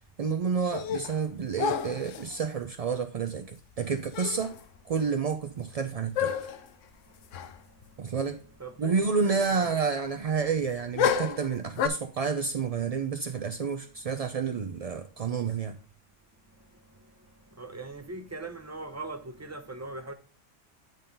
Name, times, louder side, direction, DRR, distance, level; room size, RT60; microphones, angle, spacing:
voice 1, 0.2-4.6 4.9-6.3 8.0-8.4 8.8-15.8, right 5 dB, 60° right, 0.3 m, -29 dB
sound 1, 0.6-1.2 1.6-2.4 3.8-3.9 4.1-4.6 5.0-5.1 6.1-6.7 7.3-7.6 7.8-7.9 11.0-11.9, left 8 dB, 75° left, 1.0 m, -30 dB
voice 2, 8.6-9.7 17.6-20.1, right 2 dB, 15° right, 0.7 m, -40 dB
9.1 x 3.8 x 5.3 m
omnidirectional pair, 1.3 m